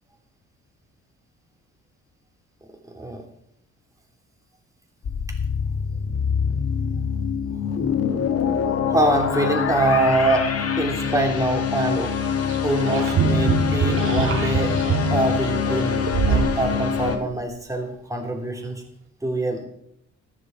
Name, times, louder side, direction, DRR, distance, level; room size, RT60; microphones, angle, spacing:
sound 1, 5.0-17.2, left 7 dB, 50° left, 1.5 m, -24 dB
voice 1, 8.9-10.5 10.8-14.7 15.1-18.8 19.2-19.7, right 2 dB, 10° right, 1 dB, 3.2 m, -24 dB
sound 2, 8.9-9.0 11.8-17.4, right 4 dB, 45° right, 2.9 m, -35 dB
sound 3, 13.1-16.5 17.0-17.1, right 5 dB, 65° right, 1.9 m, -23 dB
14.0 x 10.5 x 4.6 m, 0.74 s
cardioid pair, 90°, 30 cm